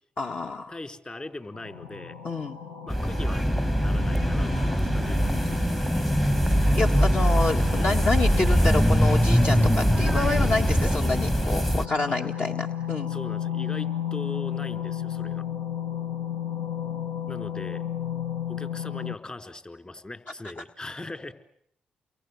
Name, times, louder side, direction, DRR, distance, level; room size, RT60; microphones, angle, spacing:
voice 1, 0.2-0.8 2.2-2.6 6.7-13.1 20.6-20.7, left 3 dB, 50° left, 2 dB, 1.6 m, -28 dB
voice 2, 0.7-2.2 2.8-3.5 3.7-5.2 12.1-12.2 13.1-15.4 17.3-17.8 18.5-21.3, left 2 dB, 30° left, 6 dB, 4.2 m, -40 dB
sound 1, 1.5-19.2, left 9 dB, 90° left, 1.2 m, -34 dB
sound 2, 2.9-11.9, equal, 5° left, 1.1 m, -22 dB
29.5 x 23.0 x 8.3 m, 0.71 s
hypercardioid pair, 45°, 4 cm